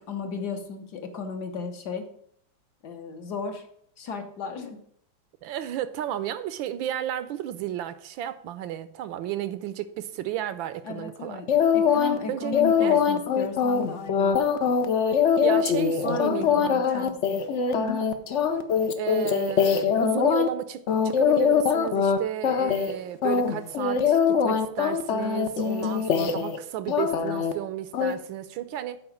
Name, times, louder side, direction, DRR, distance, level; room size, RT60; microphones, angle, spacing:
voice 1, 0.1-2.1 2.8-3.6 4.0-4.8 10.8-11.5 11.7-14.3 15.4-15.6 16.0-17.5 17.8-18.0, left 4 dB, 60° left, 1.3 m, -35 dB
voice 2, 5.4-11.4 12.3-13.0 15.4-17.1 19.0-29.0, right 11 dB, 80° right, 1.3 m, -33 dB
sound 1, 11.5-12.2 12.5-20.5 20.9-22.2 22.4-22.9 23.2-26.6 26.9-27.5 27.9-28.1, left 7 dB, 75° left, 0.6 m, -23 dB
7.9 x 4.8 x 7.0 m
omnidirectional pair, 2.2 m